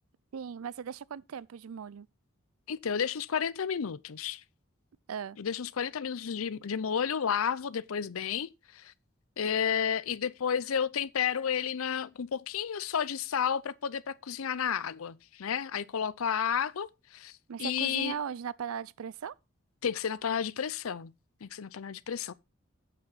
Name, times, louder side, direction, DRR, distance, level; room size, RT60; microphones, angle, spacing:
voice 1, 0.3-2.1 5.1-5.4 17.5-19.3, right 7 dB, 90° right, 0.4 m, -38 dB
voice 2, 2.7-4.4 5.4-8.9 9.4-18.1 19.8-21.1 21.4-22.3, left 7 dB, 85° left, 0.5 m, -32 dB
8.6 x 7.8 x 4.0 m
head